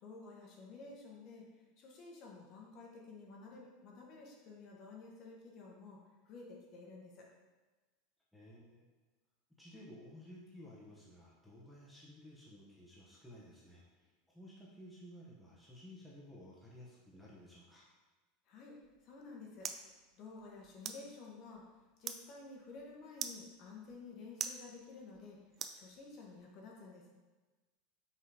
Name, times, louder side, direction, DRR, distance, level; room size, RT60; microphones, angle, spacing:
voice 1, 0.0-1.4 1.8-6.0 6.2-7.3 18.5-18.8 19.0-19.7 20.2-21.6 22.0-25.4 25.7-27.1, left 4 dB, 35° left, -2 dB, 1.3 m, -52 dB
voice 2, 8.3-8.9 9.6-17.9, left 1 dB, ahead, -6 dB, 1.0 m, -55 dB
sound 1, 18.8-26.4, right 7 dB, 30° right, 0.4 m, -48 dB
5.6 x 3.9 x 4.8 m, 1.3 s
supercardioid pair, 155°, 0 cm